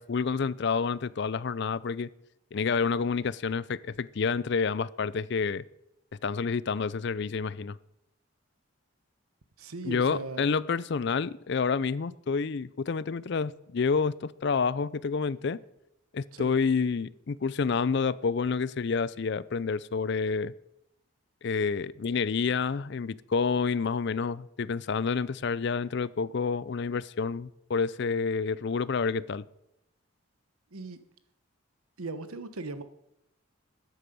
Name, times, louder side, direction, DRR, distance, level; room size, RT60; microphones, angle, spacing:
voice 1, 0.0-2.1 2.5-5.6 6.2-7.8 9.9-15.6 16.1-20.5 21.4-29.4, left 5 dB, 55° left, 19 dB, 0.4 m, -29 dB
voice 2, 9.6-10.5 16.3-16.5 30.7-31.0 32.0-32.8, right 3 dB, 85° right, 11 dB, 1.1 m, -38 dB
13.5 x 10.0 x 5.4 m, 0.83 s
head